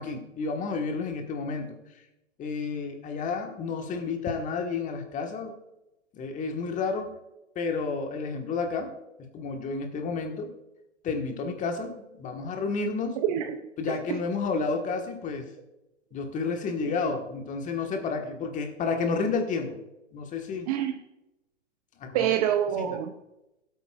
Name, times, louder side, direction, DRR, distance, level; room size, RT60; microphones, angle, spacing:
voice 1, 0.0-1.7 2.4-5.6 6.1-7.1 7.5-8.9 9.3-10.5 11.0-13.2 13.8-15.5 16.1-19.8 20.1-20.7 22.0-22.2 22.8-23.0, left 4 dB, 20° left, 4 dB, 1.4 m, -31 dB
voice 2, 13.2-14.2 20.7-21.0 22.1-23.2, right 10 dB, 30° right, 8 dB, 0.5 m, -27 dB
18.0 x 8.2 x 2.4 m, 0.93 s
hypercardioid pair, 120°, 37 cm